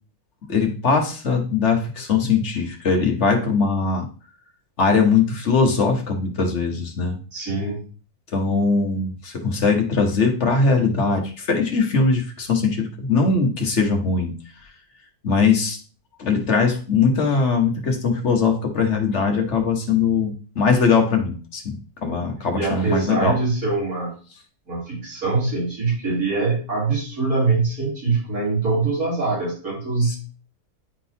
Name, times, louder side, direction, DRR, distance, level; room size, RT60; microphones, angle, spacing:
voice 1, 0.5-4.1 4.8-7.2 8.3-14.3 15.2-15.8 16.2-23.4 30.1-30.2, left 4 dB, 50° left, 3 dB, 1.4 m, -21 dB
voice 2, 7.3-7.8 22.5-24.1 24.7-30.2, right 3 dB, 75° right, -8 dB, 3.8 m, -23 dB
10.0 x 3.8 x 2.8 m, 0.37 s
omnidirectional pair, 1.6 m